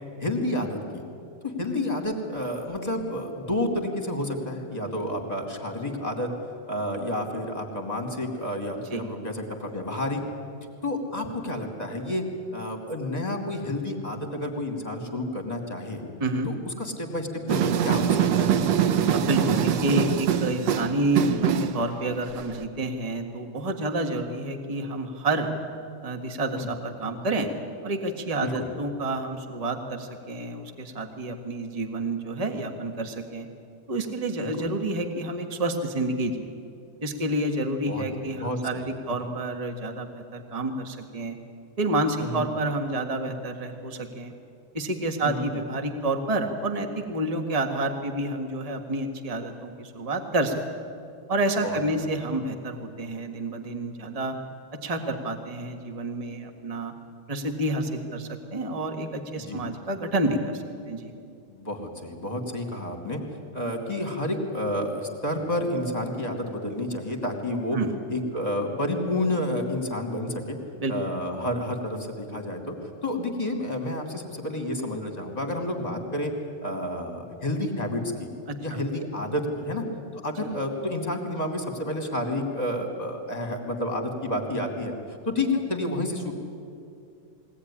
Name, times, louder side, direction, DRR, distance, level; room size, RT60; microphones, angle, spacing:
voice 1, 0.2-1.0 1.4-6.3 6.7-10.2 10.8-12.2 12.5-16.0 16.4-18.5 26.6-26.7 28.4-28.7 34.4-34.7 37.8-38.9 39.2-39.3 42.2-42.4 45.2-45.6 51.6-51.8 59.4-59.6 61.5-63.2 63.5-67.8 68.1-70.6 70.9-76.3 76.6-78.3 78.6-79.8 80.1-85.0 85.3-86.3, left 1 dB, 15° left, 3 dB, 2.2 m, -30 dB
sound 1, 17.5-22.6, right 8 dB, 65° right, 1.7 m, -23 dB
voice 2, 19.1-25.5 26.0-27.5 27.8-33.5 33.9-36.5 37.0-41.4 41.8-44.3 44.7-50.6 51.3-54.4 54.8-56.9 57.3-61.1 67.7-67.9 70.8-70.9, right 2 dB, 25° right, 4 dB, 0.7 m, -29 dB
22.0 x 18.0 x 10.0 m, 2.5 s
omnidirectional pair, 3.8 m